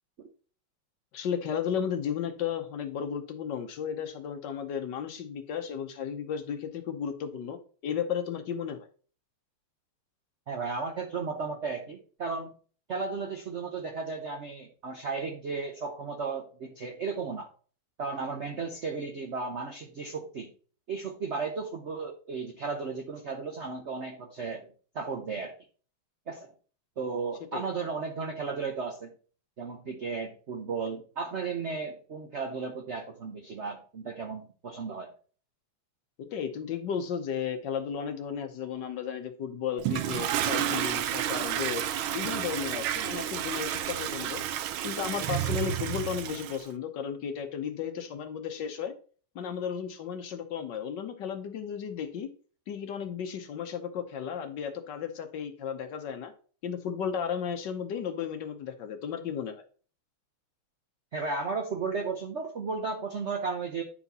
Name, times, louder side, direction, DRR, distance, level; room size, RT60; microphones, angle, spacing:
voice 1, 1.1-8.9 27.5-27.6 36.3-41.8 42.1-44.4 44.8-48.9 49.3-52.3 52.7-56.3 56.6-59.6, left 7 dB, 65° left, 7 dB, 1.4 m, -34 dB
voice 2, 10.5-12.5 12.9-17.5 18.0-20.5 20.9-24.7 24.9-25.5 26.3-26.5 27.0-29.1 29.6-35.1 61.1-63.8, right 4 dB, 60° right, 3 dB, 0.7 m, -34 dB
Toilet flush, 39.8-46.6, right 11 dB, 80° right, 1.5 m, -31 dB
9.8 x 4.4 x 4.1 m, 0.41 s
omnidirectional pair, 2.3 m